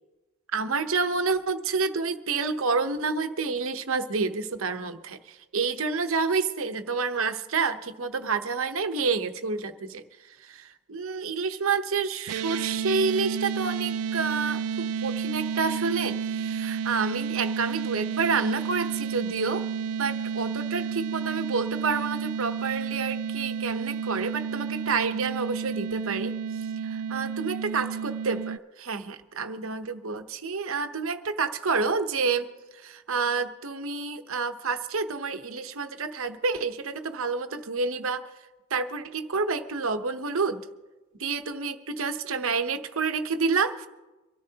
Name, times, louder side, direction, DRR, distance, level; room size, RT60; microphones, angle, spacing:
voice 1, 0.5-10.0 10.4-19.7 20.0-26.3 27.1-32.5 32.8-38.2 38.7-40.6 41.2-43.9, right 4 dB, 60° right, 8 dB, 0.9 m, -29 dB
sound 1, 12.3-28.6, right 7 dB, 85° right, 0.4 m, -31 dB
24.5 x 13.5 x 2.9 m, 1.1 s
head